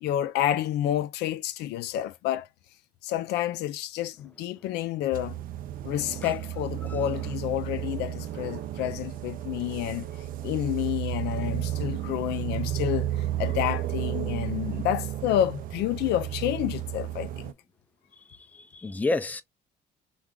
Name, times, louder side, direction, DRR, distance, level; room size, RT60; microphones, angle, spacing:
voice 1, 0.0-2.5 3.0-5.4 5.8-10.1 10.4-17.5, left 12 dB, 80° left, 0.4 m, -29 dB
sound 1, 5.1-17.5, right 12 dB, 55° right, 0.4 m, -33 dB
voice 2, 18.1-19.4, left 2 dB, 10° left, 0.4 m, -32 dB
3.3 x 2.4 x 3.7 m
cardioid pair, 110°, 17 cm